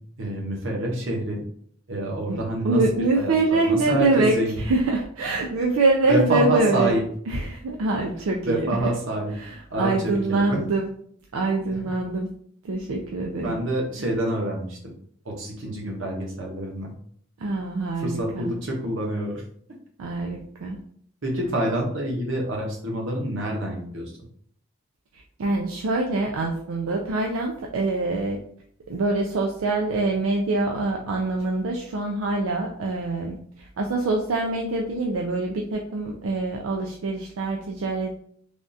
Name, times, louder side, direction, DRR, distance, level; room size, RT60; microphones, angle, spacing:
voice 1, 0.2-1.4 1.9-4.6 6.1-7.0 8.4-9.3 9.7-10.6 11.7-11.8 13.4-14.8 15.2-16.9 18.0-19.4 21.2-24.1, right 1 dB, 60° right, -1 dB, 0.8 m, -27 dB
voice 2, 2.6-7.0 7.3-8.8 9.4-10.9 11.3-12.3 12.6-13.6 17.4-18.5 20.0-20.8 25.1-28.4 28.9-38.2, right 2 dB, 80° right, 1 dB, 0.4 m, -25 dB
3.5 x 2.4 x 2.6 m, 0.62 s
head